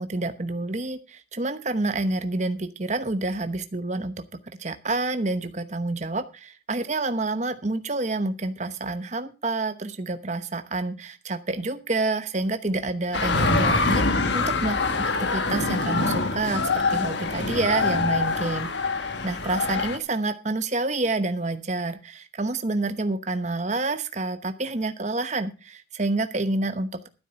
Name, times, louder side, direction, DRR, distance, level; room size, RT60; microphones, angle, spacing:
voice 1, 0.0-14.8 15.3-18.7 19.2-27.1, right 2 dB, 35° right, 9 dB, 0.9 m, -28 dB
sound 1, 13.1-20.0, left 3 dB, 65° left, 1.4 m, -24 dB
12.5 x 7.8 x 5.6 m, 0.31 s
head